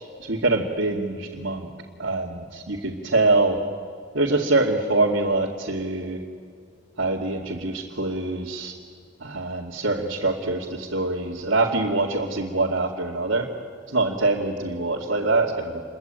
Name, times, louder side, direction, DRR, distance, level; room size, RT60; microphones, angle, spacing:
voice 1, 0.3-1.7 2.0-3.6 4.1-6.2 7.0-8.7 9.2-13.5 13.9-15.8, right 2 dB, 85° right, -4 dB, 2.5 m, -24 dB
28.5 x 22.5 x 9.1 m, 2.1 s
head